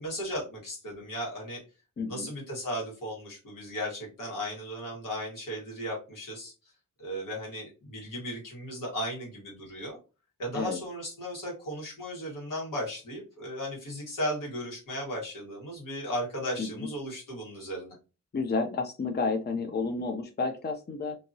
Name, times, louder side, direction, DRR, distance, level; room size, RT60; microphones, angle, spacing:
voice 1, 0.0-1.6 2.0-6.5 7.0-10.0 10.4-18.0, equal, 85° left, -2 dB, 1.7 m, -36 dB
voice 2, 2.0-2.3 10.5-10.8 16.6-16.9 18.3-21.2, left 4 dB, 30° left, 5 dB, 0.6 m, -31 dB
2.8 x 2.7 x 2.7 m, 0.32 s
cardioid pair, 65°, 31 cm